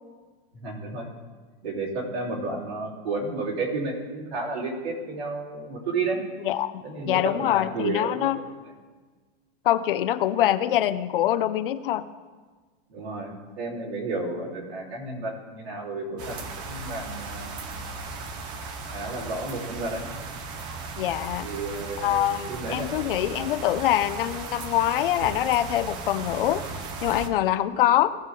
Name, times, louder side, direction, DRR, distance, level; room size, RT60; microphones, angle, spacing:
voice 1, 0.6-1.1 1.6-6.2 6.8-8.4 12.9-17.8 18.9-20.1 21.4-23.0 23.4-23.5, right 3 dB, 90° right, -4 dB, 3.9 m, -32 dB
voice 2, 6.4-8.4 9.6-12.1 21.0-21.5 22.0-26.6 27.0-28.2, left 12 dB, 60° left, 13 dB, 0.6 m, -24 dB
sound 1, 16.2-27.3, right 4 dB, 15° right, 0.4 m, -36 dB
17.5 x 6.6 x 3.7 m, 1.4 s
supercardioid pair, 165°, 31 cm